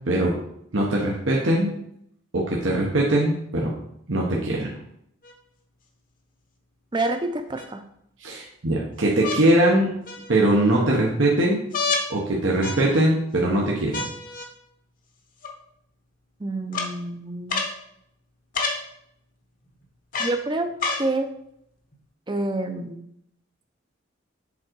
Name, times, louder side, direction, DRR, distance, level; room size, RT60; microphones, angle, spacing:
voice 1, 0.1-0.4 0.7-1.7 2.3-3.7 4.1-4.7 8.2-9.9 10.3-11.6 12.1-14.1, right 1 dB, 75° right, -3 dB, 1.1 m, -21 dB
sound 1, 5.2-5.3 7.0-7.7 9.2-9.4 10.1-10.6 11.7-12.1 12.6-13.2 13.9-14.5 15.4-15.5 16.7-16.9 17.5-17.7 18.5-18.8 20.1-20.4 20.8-21.1 21.9-22.0, left 3 dB, 45° left, 1.0 m, -29 dB
voice 2, 6.9-7.8 16.4-17.6 20.2-20.7 21.0-21.3 22.3-23.0, right 2 dB, 25° right, 7 dB, 0.6 m, -27 dB
7.3 x 3.8 x 4.5 m, 0.74 s
head